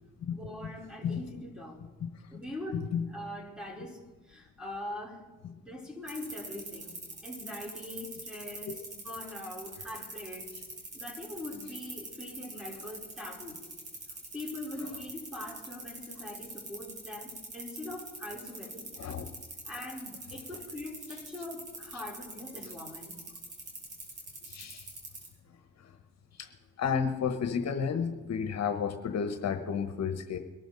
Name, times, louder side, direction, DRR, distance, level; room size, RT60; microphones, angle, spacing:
voice 1, 0.3-1.8 2.3-5.2 5.5-7.0 7.2-10.5 10.9-13.6 14.3-19.1 19.7-23.2, left 1 dB, 5° right, -1 dB, 4.1 m, -42 dB
sound 1, 6.1-25.3, right 3 dB, 55° right, 6.0 m, -43 dB
voice 2, 19.0-19.3 24.4-24.9 26.4-26.5 26.8-30.4, left 6 dB, 60° left, 7 dB, 1.2 m, -32 dB
22.5 x 13.0 x 4.0 m, 1.2 s
cardioid pair, 90°, 30 cm